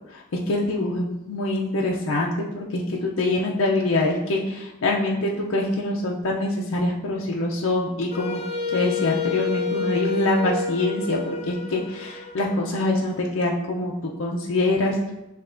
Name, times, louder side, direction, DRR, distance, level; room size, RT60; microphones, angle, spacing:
voice 1, 0.5-8.4 8.7-15.1, left 2 dB, 90° left, -2 dB, 0.5 m, -24 dB
Wind instrument woodwind instrument, 8.1-13.0, left 5 dB, 30° left, 0.5 m, -29 dB
6.6 x 2.9 x 2.5 m, 0.95 s
head